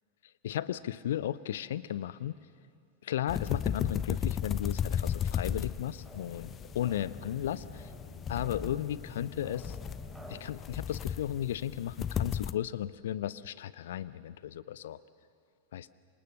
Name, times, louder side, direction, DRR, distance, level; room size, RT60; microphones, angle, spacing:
voice 1, 0.4-2.3 3.0-7.9 8.3-9.8 10.3-15.0 15.7-15.9, left 11 dB, 60° left, 18 dB, 0.7 m, -35 dB
sound 1, 3.3-12.5, left 8 dB, 25° left, 0.7 m, -35 dB
sound 2, 3.5-10.4, right 1 dB, 5° right, 5.6 m, -51 dB
27.5 x 26.0 x 6.5 m, 2.4 s
figure-of-eight pair, 90°, 0 cm